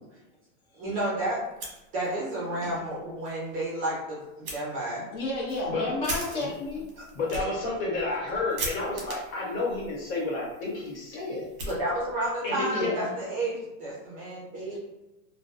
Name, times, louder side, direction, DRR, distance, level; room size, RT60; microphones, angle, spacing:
voice 1, 0.7-1.4 1.9-5.0 7.0-7.1 11.7-14.8, right 1 dB, 20° right, -7 dB, 0.5 m, -31 dB
Fire, 1.4-2.4 2.7-2.8 3.2-3.3 4.4-4.6 5.2-12.3, right 1 dB, 45° right, 0.9 m, -40 dB
voice 2, 5.1-6.8 12.5-13.1 14.7-14.8, left 2 dB, 35° left, -5 dB, 0.8 m, -32 dB
voice 3, 7.1-11.5 12.4-12.9, left 3 dB, 75° left, -3 dB, 1.1 m, -30 dB
2.2 x 2.1 x 2.6 m, 1.0 s
supercardioid pair, 160°, 42 cm